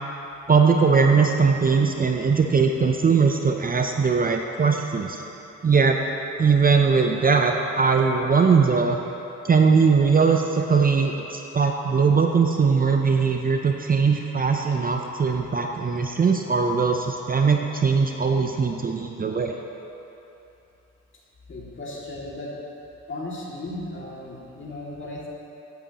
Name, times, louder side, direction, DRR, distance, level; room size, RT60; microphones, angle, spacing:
voice 1, 0.5-5.2 5.6-6.0 6.4-9.0 9.4-19.6, right 5 dB, 30° right, 3 dB, 0.6 m, -20 dB
voice 2, 21.5-22.5 23.1-25.3, left 1 dB, 40° left, -4 dB, 2.3 m, -35 dB
15.5 x 8.3 x 3.0 m, 3.0 s
cardioid pair, 90°, 30 cm